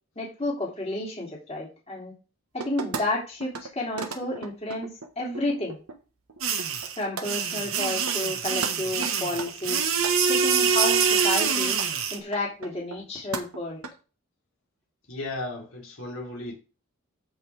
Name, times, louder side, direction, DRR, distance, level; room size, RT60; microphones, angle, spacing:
voice 1, 0.1-2.1 2.5-5.8 7.0-9.8 10.2-11.8 12.1-13.8, left 1 dB, 30° left, 3.3 m, -31 dB
sound 1, 2.6-3.0 3.4-3.7 4.0-6.0 6.3-6.9 7.2-7.3 7.7-7.8 8.1-8.4 8.6-8.7 9.0-10.2 10.8-10.9 11.3-11.4 11.7-11.9 12.3-13.1 13.3-13.9, right 4 dB, 80° right, 1.5 m, -35 dB
sound 2, 6.4-12.2, right 6 dB, 65° right, 1.6 m, -25 dB
voice 2, 15.1-16.5, left 2 dB, 65° left, 3.4 m, -35 dB
14.5 x 5.5 x 3.6 m
head